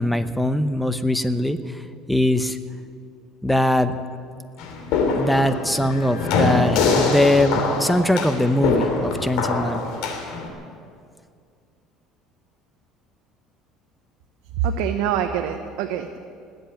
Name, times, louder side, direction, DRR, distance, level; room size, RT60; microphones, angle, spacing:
voice 1, 0.0-1.8 2.1-2.6 3.4-3.9 5.2-9.8, left 1 dB, 5° left, 10 dB, 0.8 m, -21 dB
sound 1, 4.6-10.5, left 3 dB, 70° left, 3.0 m, -23 dB
voice 2, 14.6-16.2, right 8 dB, 80° right, 5 dB, 0.8 m, -24 dB
20.0 x 8.2 x 8.7 m, 2.2 s
cardioid pair, 125°, 0 cm